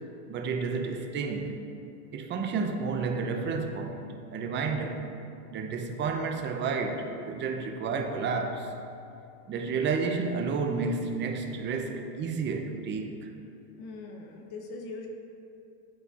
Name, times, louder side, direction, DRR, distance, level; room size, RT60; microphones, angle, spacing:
voice 1, 0.3-1.6 2.1-5.0 5.5-8.7 9.5-13.3, right 4 dB, 25° right, 4 dB, 0.5 m, -31 dB
voice 2, 13.8-15.1, left 3 dB, 50° left, 2 dB, 1.1 m, -41 dB
11.5 x 4.2 x 2.4 m, 2.6 s
supercardioid pair, 120°, 48 cm